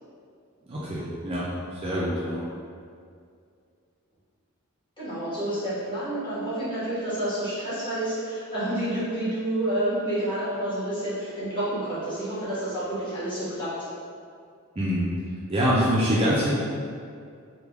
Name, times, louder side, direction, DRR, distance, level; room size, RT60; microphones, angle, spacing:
voice 1, 0.6-1.5 1.7-2.4 14.8-15.1 15.5-16.5, equal, 25° right, -8 dB, 0.4 m, -24 dB
voice 2, 5.0-13.7, right 1 dB, 20° left, -12 dB, 1.2 m, -29 dB
3.3 x 2.3 x 3.4 m, 2.3 s
head